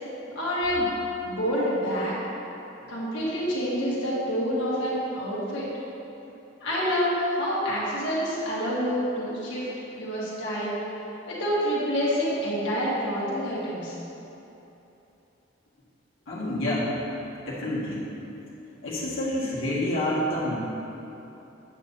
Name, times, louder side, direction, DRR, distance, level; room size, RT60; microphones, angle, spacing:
voice 1, 0.3-0.9 1.2-2.2 2.9-5.7 6.6-9.7 10.0-10.8 11.3-13.9, equal, 65° left, -8 dB, 1.6 m, -27 dB
voice 2, 16.3-16.9 17.5-18.0 18.8-20.6, left 1 dB, 90° left, -8 dB, 1.7 m, -28 dB
8.5 x 8.0 x 2.7 m, 3.0 s
head